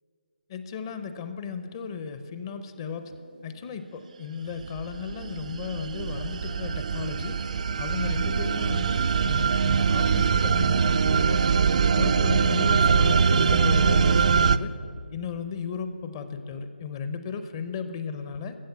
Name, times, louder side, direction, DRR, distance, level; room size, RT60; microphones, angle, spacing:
voice 1, 0.5-3.1 3.4-7.4 7.8-11.4 12.0-14.7 15.1-18.5, left 6 dB, 25° left, 10 dB, 0.6 m, -35 dB
sound 1, 4.5-14.6, right 6 dB, 40° right, 0.3 m, -23 dB
15.0 x 6.4 x 8.2 m, 2.4 s
figure-of-eight pair, 155°, 6 cm